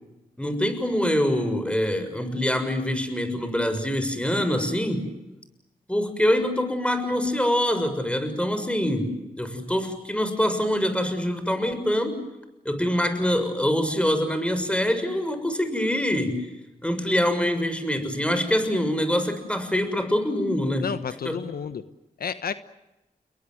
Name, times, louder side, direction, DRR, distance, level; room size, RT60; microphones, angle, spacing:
voice 1, 0.4-5.1 5.9-12.2 12.6-16.5 16.8-20.9 21.2-21.4, left 1 dB, 5° left, 10 dB, 6.7 m, -25 dB
voice 2, 20.8-21.8 22.2-22.5, left 7 dB, 80° left, 12 dB, 1.2 m, -31 dB
29.5 x 22.5 x 7.9 m, 0.97 s
cardioid pair, 55°, 15 cm